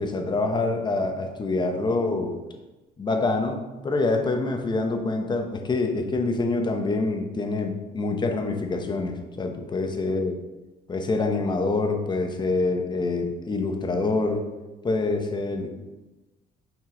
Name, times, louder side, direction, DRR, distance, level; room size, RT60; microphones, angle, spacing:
voice 1, 0.0-2.4 3.0-10.3 10.9-14.5 14.8-15.7, left 3 dB, 25° left, 4 dB, 0.9 m, -26 dB
6.0 x 5.4 x 3.8 m, 1.1 s
cardioid pair, 110°, 17 cm